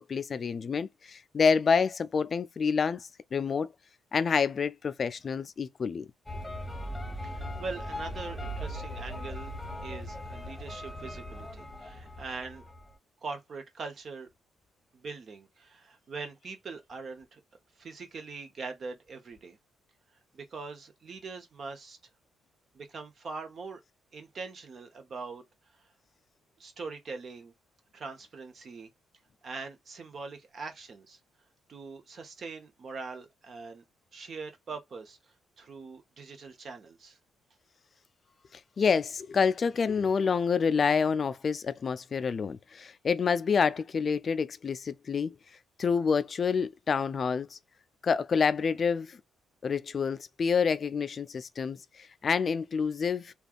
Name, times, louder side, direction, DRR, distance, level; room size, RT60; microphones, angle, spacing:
voice 1, 0.0-3.7 4.1-6.1 38.5-45.3 45.8-47.6 48.0-49.2 49.6-53.3, left 6 dB, 45° left, 0.3 m, -28 dB
sound 1, 6.3-12.9, equal, 5° left, 1.3 m, -39 dB
voice 2, 7.2-9.5 9.8-12.6 13.2-14.3 14.9-17.4 17.8-19.6 20.3-22.0 22.7-23.8 24.1-25.4 26.6-27.5 27.9-28.9 29.4-31.2 31.7-33.8 34.1-35.2 35.6-37.2, right 4 dB, 50° right, 1.0 m, -42 dB
3.3 x 2.3 x 2.4 m
cardioid pair, 90°, 0 cm